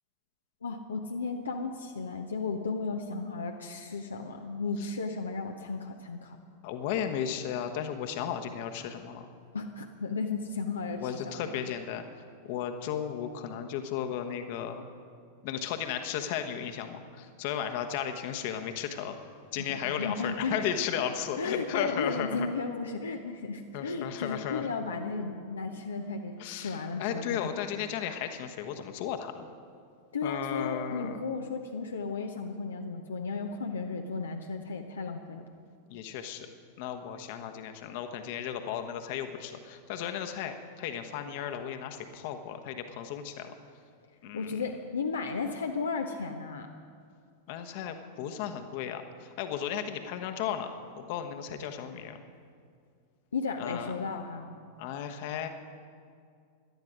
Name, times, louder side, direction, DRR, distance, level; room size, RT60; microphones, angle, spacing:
voice 1, 0.6-6.4 9.5-11.5 19.6-20.6 21.4-27.4 30.1-35.5 44.3-46.7 53.3-54.5, left 4 dB, 70° left, 3 dB, 0.8 m, -34 dB
voice 2, 6.6-9.2 11.0-12.0 12.4-14.8 15.4-19.2 19.5-22.5 23.7-24.7 26.4-29.5 30.2-31.2 35.9-36.5 36.8-43.5 44.2-44.6 47.5-52.2 53.6-53.9 54.8-55.5, left 9 dB, 50° left, 6 dB, 1.2 m, -35 dB
17.5 x 12.0 x 5.1 m, 2.2 s
figure-of-eight pair, 90°, 0 cm